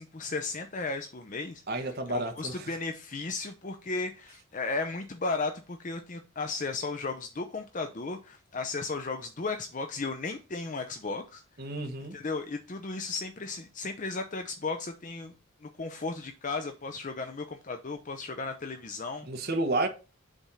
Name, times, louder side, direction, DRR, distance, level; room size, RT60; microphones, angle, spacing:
voice 1, 0.0-11.4 12.1-15.3 15.6-19.3, left 3 dB, 35° left, 0.6 m, -35 dB
voice 2, 1.7-2.6 11.6-12.2 19.3-19.9, right 2 dB, 45° right, 1.2 m, -31 dB
7.2 x 3.5 x 5.4 m
head